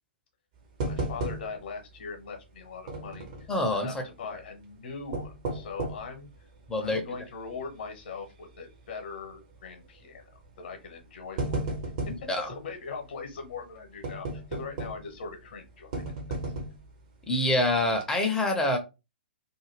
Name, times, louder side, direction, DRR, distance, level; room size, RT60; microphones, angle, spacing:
voice 1, 0.8-6.3 6.7-10.2 10.6-11.6 12.4-16.4, left 5 dB, 50° left, 0.9 m, -41 dB
sound 1, 0.8-1.8 2.1-2.2 2.9-3.5 4.9-6.1 6.7-6.8 7.4-7.7 8.0-8.1 9.2-9.5 10.4-10.6 11.0-12.3 14.0-15.2 15.9-16.9 17.4-17.6 17.9-18.0, right 2 dB, 40° right, 0.8 m, -33 dB
voice 2, 3.5-4.0 6.7-7.0 12.3-12.5 17.3-18.8, left 1 dB, 10° left, 0.6 m, -26 dB
2.5 x 2.1 x 3.2 m
figure-of-eight pair, 115°, 6 cm